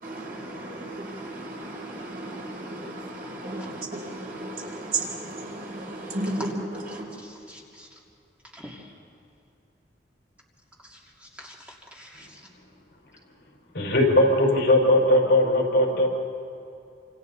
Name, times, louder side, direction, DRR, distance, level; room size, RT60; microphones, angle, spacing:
voice 1, 0.0-6.5 6.9-7.0, right 2 dB, 50° right, -1 dB, 4.4 m, -34 dB
voice 2, 7.2-7.9 8.5-8.9 10.9-12.4, equal, 5° right, -3 dB, 2.7 m, -47 dB
voice 3, 13.7-16.1, left 1 dB, 60° left, -1 dB, 5.0 m, -19 dB
27.5 x 27.0 x 4.1 m, 2.7 s
head